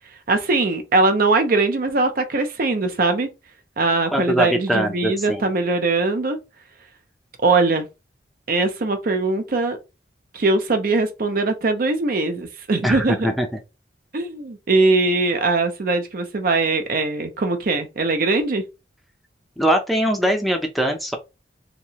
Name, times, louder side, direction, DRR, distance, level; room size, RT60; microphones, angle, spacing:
voice 1, 0.3-3.3 3.8-6.4 7.4-7.9 8.5-9.8 10.3-13.2 14.1-18.6, right 3 dB, 55° right, 0.5 m, -21 dB
voice 2, 4.1-5.5 12.8-13.5 19.6-21.2, equal, ahead, 0.5 m, -22 dB
2.9 x 2.7 x 2.8 m
head